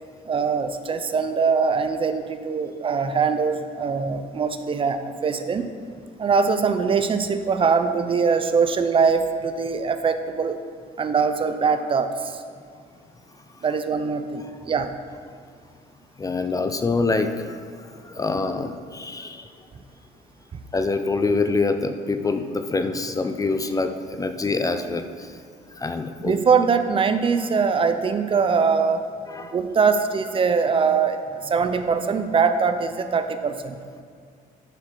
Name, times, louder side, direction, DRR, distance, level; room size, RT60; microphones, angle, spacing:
voice 1, 0.3-5.7 6.2-10.6 11.0-12.4 13.6-14.9 26.2-29.1 29.4-33.8, right 5 dB, 30° right, 9 dB, 0.5 m, -22 dB
voice 2, 16.2-19.5 20.7-25.3 25.8-26.3 29.3-29.6, left 3 dB, 20° left, 8 dB, 0.5 m, -25 dB
9.8 x 4.7 x 6.0 m, 2.1 s
cardioid pair, 110°, 17 cm